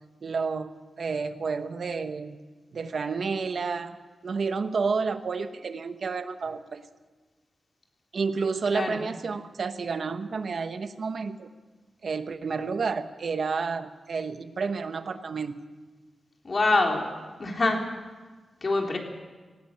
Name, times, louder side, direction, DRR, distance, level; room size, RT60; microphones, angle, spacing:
voice 1, 0.2-0.7 1.0-2.4 2.7-4.0 4.2-6.8 8.1-11.5 12.0-15.6, right 5 dB, 60° right, 9 dB, 1.1 m, -30 dB
voice 2, 16.4-17.1 17.4-17.9 18.6-19.0, left 2 dB, 40° left, 1 dB, 3.6 m, -25 dB
18.0 x 17.5 x 9.0 m, 1.3 s
wide cardioid pair, 105°, 0 cm